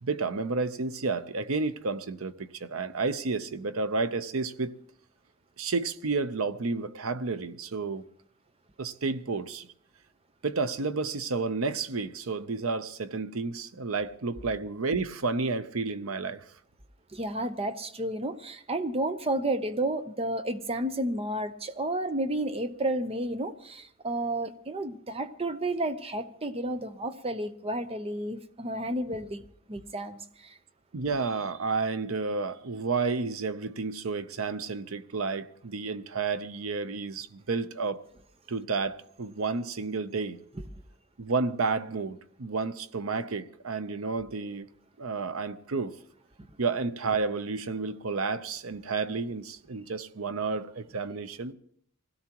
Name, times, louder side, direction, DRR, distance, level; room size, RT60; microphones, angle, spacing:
voice 1, 0.0-4.7 5.6-8.1 8.8-9.7 10.4-16.4 30.9-38.0 38.5-40.4 41.2-44.7 45.0-46.0 46.6-51.5, right 4 dB, 85° right, 0.8 m, -31 dB
voice 2, 17.1-30.6, right 1 dB, 30° right, 0.8 m, -31 dB
24.5 x 16.5 x 3.0 m
head